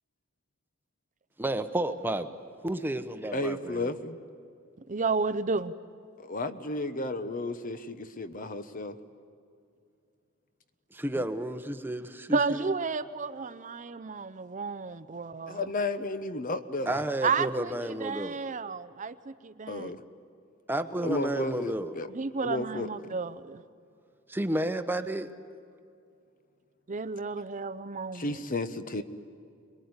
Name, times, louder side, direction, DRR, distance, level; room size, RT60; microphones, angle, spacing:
voice 1, 1.4-2.3 2.6-3.9 10.9-12.7 16.9-18.4 20.7-21.9 24.3-25.3, right 1 dB, 10° right, 9 dB, 0.9 m, -31 dB
voice 2, 3.3-4.2 6.2-9.0 15.5-17.0 19.7-20.0 21.0-22.1 22.4-23.2 28.1-29.0, left 2 dB, 45° left, 10 dB, 1.0 m, -33 dB
voice 3, 4.9-5.7 12.3-15.6 17.2-17.7 18.0-19.9 22.1-23.6 26.9-28.3, right 4 dB, 40° right, 13 dB, 0.6 m, -32 dB
26.0 x 22.0 x 9.6 m, 2.4 s
head